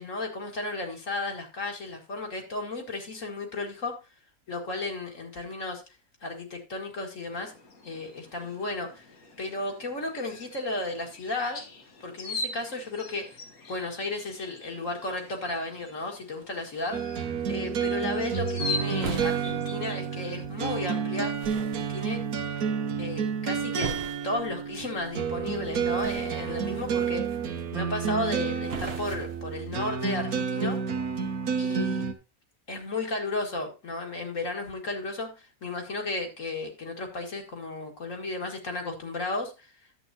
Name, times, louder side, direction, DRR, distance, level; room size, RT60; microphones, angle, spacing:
voice 1, 0.0-4.0 4.5-5.8 6.2-7.5 7.8-9.1 9.4-11.6 12.0-13.4 13.7-17.0 17.5-21.3 21.8-22.2 23.0-23.9 24.2-27.4 27.7-30.8 31.6-32.1 32.7-39.7, left 2 dB, 55° left, 2 dB, 2.3 m, -34 dB
sound 1, 7.3-20.4, left 3 dB, 70° left, 2.0 m, -41 dB
sound 2, 16.9-32.1, right 6 dB, 75° right, 1.4 m, -30 dB
sound 3, 18.1-30.2, right 6 dB, 45° right, 1.1 m, -43 dB
11.0 x 7.9 x 2.8 m, 0.29 s
omnidirectional pair, 1.6 m